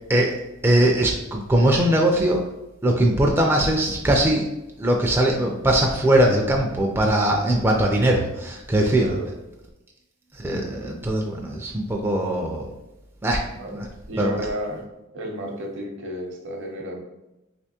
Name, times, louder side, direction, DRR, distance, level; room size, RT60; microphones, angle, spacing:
voice 1, 0.6-2.4 2.8-4.4 4.8-9.1 10.4-12.7 13.2-13.4 13.7-13.8 14.2-14.4, right 1 dB, 10° right, 0 dB, 0.3 m, -20 dB
voice 2, 8.7-9.3 13.5-14.8 15.1-17.0, equal, 65° right, 1 dB, 0.7 m, -32 dB
3.4 x 2.8 x 2.8 m, 0.96 s
head